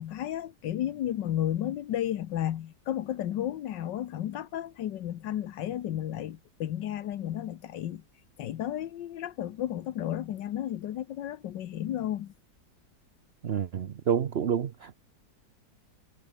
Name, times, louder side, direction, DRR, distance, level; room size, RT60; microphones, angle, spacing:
voice 1, 0.0-8.0 8.4-12.3, left 11 dB, 85° left, 1.6 m, -33 dB
voice 2, 13.4-15.0, right 8 dB, 50° right, 0.8 m, -29 dB
omnidirectional pair, 1.9 m